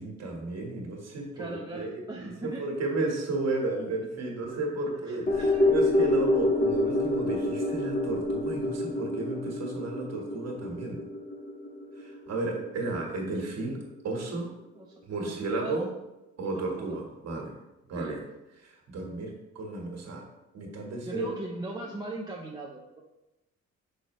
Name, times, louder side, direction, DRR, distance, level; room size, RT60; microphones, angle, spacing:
voice 1, 0.0-11.0 11.9-14.5 15.1-15.9 16.4-17.5 17.9-18.2 18.5-20.3 20.5-21.3, right 2 dB, 60° right, 0 dB, 1.5 m, -33 dB
voice 2, 1.4-2.6 4.5-4.6 5.1-6.3 6.6-6.7 14.7-14.9 15.2-15.9 16.4-16.5 16.8-16.9 17.9-18.1 21.0-23.0, right 2 dB, 15° right, -3 dB, 0.7 m, -40 dB
sound 1, 5.3-13.7 14.0-14.1, left 2 dB, 30° left, 0.9 m, -28 dB
6.3 x 5.1 x 3.1 m, 0.97 s
cardioid pair, 90°, 30 cm